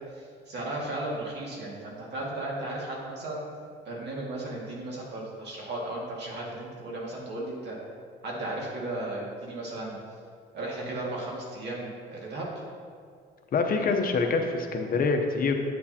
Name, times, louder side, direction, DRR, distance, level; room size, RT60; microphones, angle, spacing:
voice 1, 0.1-3.4 3.9-7.8 8.2-10.0 10.5-12.5, right 2 dB, 60° right, -3 dB, 2.0 m, -35 dB
voice 2, 13.5-15.5, left 4 dB, 45° left, 4 dB, 0.8 m, -25 dB
8.2 x 7.4 x 2.8 m, 2.1 s
cardioid pair, 105°, 20 cm